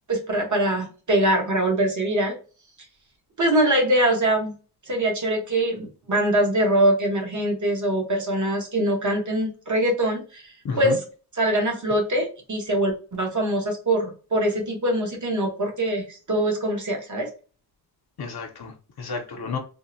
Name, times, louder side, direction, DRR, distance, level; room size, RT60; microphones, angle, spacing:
voice 1, 0.1-2.3 3.4-4.5 4.9-11.0 11.4-17.3, right 1 dB, 45° right, 1 dB, 1.0 m, -23 dB
voice 2, 10.6-11.0 18.2-19.6, left 4 dB, 65° left, 2 dB, 0.7 m, -31 dB
3.6 x 2.1 x 2.6 m, 0.37 s
wide cardioid pair, 85°, 40 cm